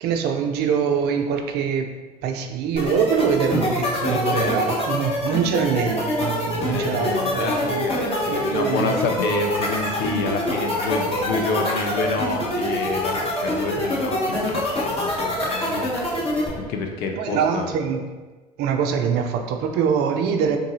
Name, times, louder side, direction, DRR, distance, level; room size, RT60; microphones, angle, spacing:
voice 1, 0.0-1.9 2.2-7.8 8.3-9.0 17.2-18.0 18.6-20.6, right 7 dB, 55° right, 5 dB, 0.4 m, -24 dB
sound 1, 2.8-16.5, left 1 dB, 30° left, 1.0 m, -25 dB
voice 2, 4.1-4.5 6.6-15.9 16.2-16.3 16.6-17.7, left 3 dB, 55° left, 3 dB, 0.6 m, -28 dB
sound 2, 7.9-16.7, left 1 dB, 10° left, 1.5 m, -39 dB
3.7 x 2.6 x 2.7 m, 1.2 s
hypercardioid pair, 65°, 20 cm